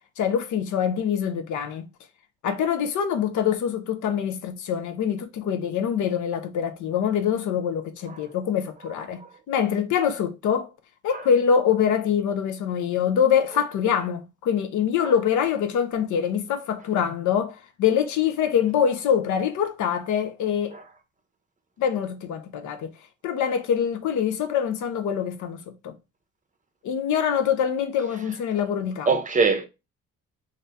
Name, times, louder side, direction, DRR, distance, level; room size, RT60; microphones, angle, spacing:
voice 1, 0.2-1.9 2.4-9.2 9.5-10.7 11.0-20.8 21.8-22.9 23.2-25.9 26.8-29.1, left 8 dB, 75° left, 0.7 m, -24 dB
voice 2, 29.1-29.7, right 4 dB, 25° right, 0.7 m, -23 dB
2.7 x 2.6 x 3.3 m
cardioid pair, 90°, 30 cm